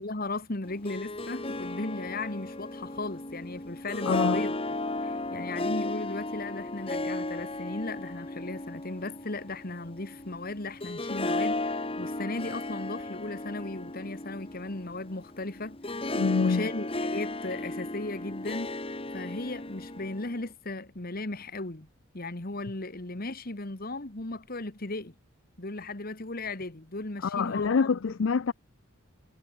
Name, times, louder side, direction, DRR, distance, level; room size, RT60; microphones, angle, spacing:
voice 1, 0.0-4.5 5.0-15.8 16.3-18.8 19.1-21.9 22.1-25.1 25.6-27.7, left 2 dB, 45° left, 1.6 m, -36 dB
Harp, 0.6-20.5, left 2 dB, 25° left, 1.6 m, -35 dB
voice 2, 4.0-4.5 16.1-16.7 27.2-28.5, left 5 dB, 60° left, 0.4 m, -26 dB
head